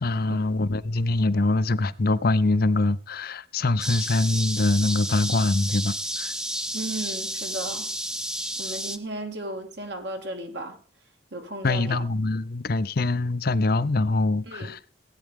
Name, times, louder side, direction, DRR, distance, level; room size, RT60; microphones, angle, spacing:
voice 1, 0.0-6.3 11.6-14.8, left 2 dB, 50° left, 0.6 m, -24 dB
sound 1, 3.8-9.0, equal, 5° right, 0.7 m, -31 dB
voice 2, 6.7-7.9 8.6-10.8 11.3-12.0 14.5-14.7, right 1 dB, 60° right, 2.2 m, -35 dB
17.0 x 9.4 x 3.6 m
head